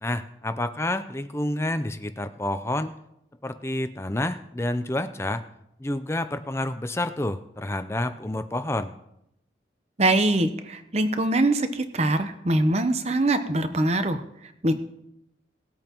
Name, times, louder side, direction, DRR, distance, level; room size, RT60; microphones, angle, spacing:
voice 1, 0.0-2.9 3.4-5.4 5.8-8.9, left 1 dB, 15° left, 10 dB, 0.5 m, -29 dB
voice 2, 10.0-14.2 14.6-14.7, right 2 dB, 35° right, 9 dB, 0.8 m, -23 dB
19.5 x 8.6 x 3.0 m, 0.79 s
head